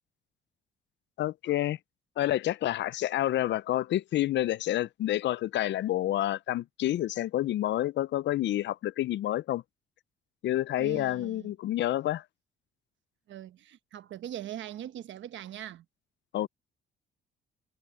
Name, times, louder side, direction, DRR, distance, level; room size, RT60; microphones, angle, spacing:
voice 1, 1.2-1.8 2.2-9.6 10.4-12.2 16.3-16.5, left 13 dB, 65° left, 0.5 m, -29 dB
voice 2, 10.8-11.5 13.3-15.8, right 11 dB, 70° right, 1.1 m, -41 dB
cardioid pair, 90°, 20 cm